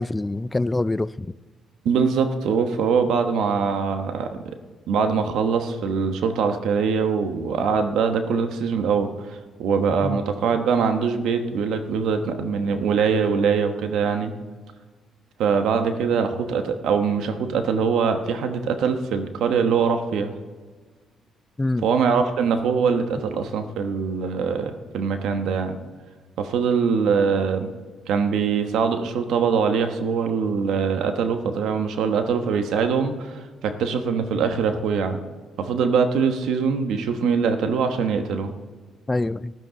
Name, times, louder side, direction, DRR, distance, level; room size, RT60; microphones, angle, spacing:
voice 1, 0.0-1.3 10.0-10.2 21.6-21.8 39.1-39.5, left 2 dB, 15° left, 0.3 m, -25 dB
voice 2, 1.8-4.4 4.9-14.3 15.4-20.3 21.8-25.8 26.4-27.7 28.1-35.2 35.6-38.5, right 6 dB, 80° right, 1.1 m, -23 dB
13.5 x 12.5 x 3.9 m
cardioid pair, 90°, 0 cm